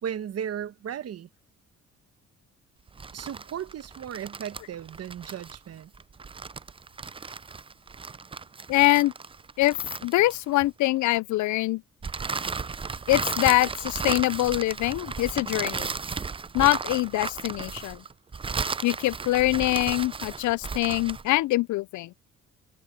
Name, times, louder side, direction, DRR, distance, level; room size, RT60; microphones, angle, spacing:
voice 1, 0.0-1.3 3.1-5.9, right 9 dB, 55° right, 1.1 m, -35 dB
sound 1, 2.9-10.7 12.0-21.3, right 5 dB, 20° right, 0.5 m, -34 dB
voice 2, 8.7-9.1 9.6-9.8 10.0-11.8 13.1-15.9 16.5-18.0 18.8-22.1, left 18 dB, 75° left, 0.5 m, -24 dB
cardioid pair, 90°, 30 cm